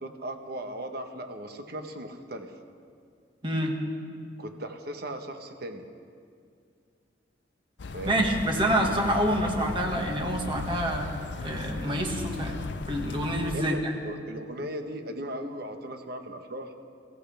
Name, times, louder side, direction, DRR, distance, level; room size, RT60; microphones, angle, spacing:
voice 1, 0.0-2.5 4.4-5.8 7.9-8.3 13.5-16.7, right 1 dB, 60° right, 6 dB, 1.2 m, -37 dB
voice 2, 3.4-3.8 8.1-11.1 11.4-12.6 12.9-13.9, right 1 dB, 30° right, 1 dB, 1.8 m, -27 dB
sound 1, 7.8-13.6, left 3 dB, 70° left, 0.5 m, -36 dB
23.0 x 15.5 x 3.5 m, 2.2 s
head